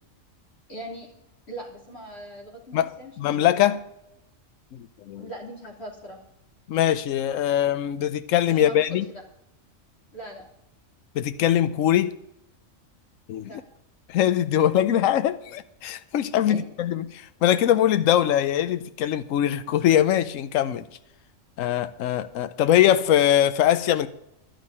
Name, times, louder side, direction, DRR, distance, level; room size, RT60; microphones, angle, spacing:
voice 1, 0.7-1.1 1.5-3.5 5.2-6.2 8.5-8.8 9.1-9.2 10.1-10.4 13.4-13.6 16.4-16.6, right 1 dB, 50° left, -2 dB, 3.5 m, -40 dB
voice 2, 2.7-3.8 4.7-5.3 6.7-9.1 11.1-12.2 13.3-13.5 14.1-20.8 21.6-24.1, left 11 dB, 75° left, 12 dB, 1.0 m, -22 dB
12.0 x 6.5 x 9.7 m, 0.82 s
omnidirectional pair, 1.4 m